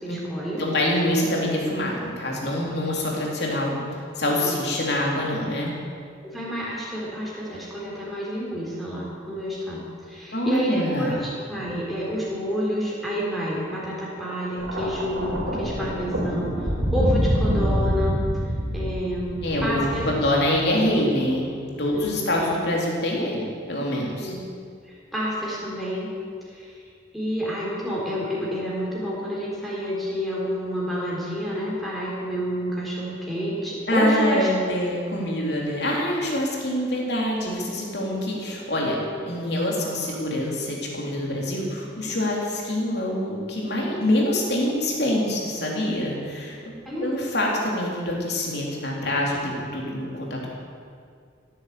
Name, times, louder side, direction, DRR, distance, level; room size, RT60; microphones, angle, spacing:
voice 1, 0.0-0.6 2.6-2.7 4.3-4.6 6.2-18.2 18.7-20.1 22.0-22.3 24.2-24.4 24.8-26.1 26.5-26.8 27.1-34.5 38.8-39.0 42.1-42.2 46.9-47.1 49.3-49.4, equal, ahead, -6 dB, 4.1 m, -29 dB
voice 2, 0.6-3.8 4.2-5.7 10.3-11.2 19.4-21.5 21.8-24.3 33.9-39.0 39.3-46.6 47.0-50.5, left 1 dB, 60° left, -2 dB, 3.7 m, -25 dB
Thunder, 14.6-20.9 21.9-22.2, equal, 85° right, 3.9 m, -26 dB
16.0 x 10.0 x 8.4 m, 2.2 s
head